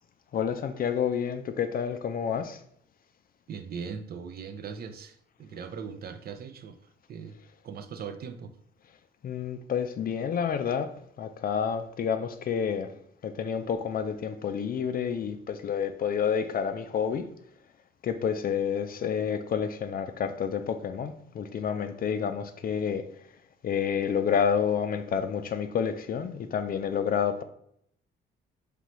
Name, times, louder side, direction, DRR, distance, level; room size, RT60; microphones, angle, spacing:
voice 1, 0.3-2.6 9.2-10.9 11.2-12.9 13.2-17.2 18.0-23.1 23.6-27.4, left 7 dB, 45° left, 0.4 m, -29 dB
voice 2, 3.5-6.8 7.1-7.4 7.6-8.6, right 6 dB, 50° right, 0.5 m, -39 dB
3.8 x 3.2 x 3.0 m
cardioid pair, 90°, 20 cm